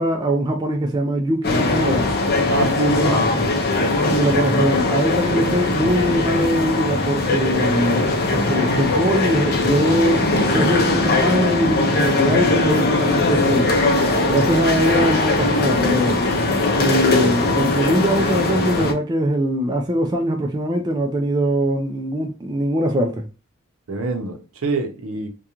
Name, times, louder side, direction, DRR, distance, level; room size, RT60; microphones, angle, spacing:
voice 1, 0.0-2.1 2.8-3.1 4.1-13.7 14.3-16.2 16.7-23.3, right 1 dB, 20° right, 0.3 m, -22 dB
sound 1, 1.4-18.9, left 2 dB, 45° left, 0.5 m, -20 dB
voice 2, 2.5-3.2 23.9-25.3, right 2 dB, 65° right, 0.6 m, -24 dB
2.4 x 2.2 x 2.8 m
head